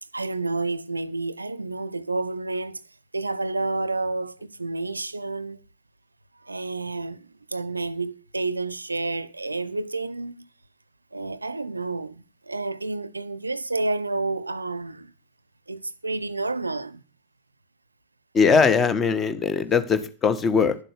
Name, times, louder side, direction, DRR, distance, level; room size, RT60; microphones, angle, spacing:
voice 1, 0.1-2.8 3.1-5.6 6.4-10.5 11.1-15.1 15.7-17.0, right 3 dB, 80° right, 0.6 m, -30 dB
voice 2, 18.3-20.8, left 5 dB, 25° left, 1.6 m, -20 dB
11.5 x 7.6 x 6.7 m
figure-of-eight pair, 90°, 0 cm